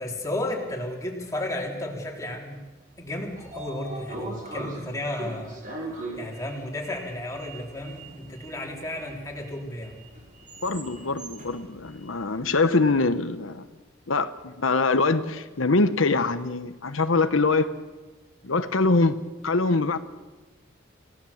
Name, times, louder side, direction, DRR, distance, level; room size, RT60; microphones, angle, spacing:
voice 1, 0.0-2.6 3.0-5.7 6.2-10.0, left 1 dB, 15° left, -1 dB, 3.8 m, -33 dB
Sliding door, 2.9-13.1, right 2 dB, 40° right, 6.0 m, -41 dB
voice 2, 10.6-13.6 14.1-17.7 18.4-20.0, left 3 dB, 85° left, 9 dB, 1.1 m, -23 dB
28.5 x 17.5 x 7.3 m, 1.3 s
head